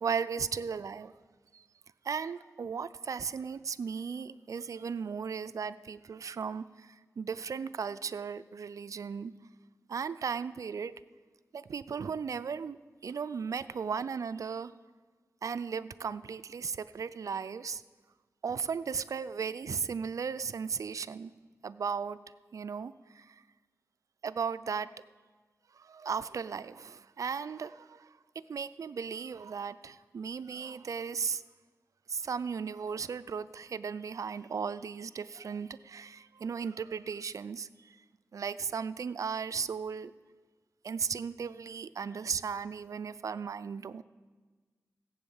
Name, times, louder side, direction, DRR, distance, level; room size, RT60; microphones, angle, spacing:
voice 1, 0.0-1.1 1.5-1.6 2.0-9.3 9.9-11.0 11.5-12.8 13.0-14.7 15.4-17.8 18.4-21.3 21.6-22.2 22.5-23.4 24.2-24.9 25.7-28.1 28.5-31.4 32.1-38.0 38.3-40.1 40.8-44.0, right 6 dB, 75° right, 15 dB, 0.4 m, -36 dB
16.0 x 8.3 x 7.1 m, 1.4 s
wide cardioid pair, 85°, 6 cm